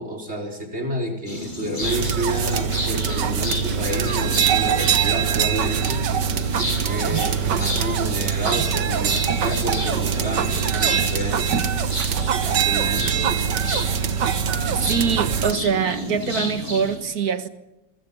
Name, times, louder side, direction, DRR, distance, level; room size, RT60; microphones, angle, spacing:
voice 1, 0.0-6.0 6.8-11.5 12.4-13.2, equal, 35° right, 5.0 m, -30 dB
sound 1, 1.3-17.0, left 1 dB, 25° left, 8.1 m, -31 dB
sound 2, 1.8-15.5, right 8 dB, 85° right, 1.9 m, -23 dB
sound 3, 2.3-2.5 3.5-3.8 4.9-5.2 6.0-6.4 7.5-7.9 9.1-9.8 10.7-11.4 12.2-13.0 13.3-13.4 14.2-15.2, left 1 dB, 55° left, 8.5 m, -43 dB
voice 2, 14.8-17.5, right 6 dB, 60° right, 2.0 m, -24 dB
28.0 x 23.5 x 5.6 m
omnidirectional pair, 1.9 m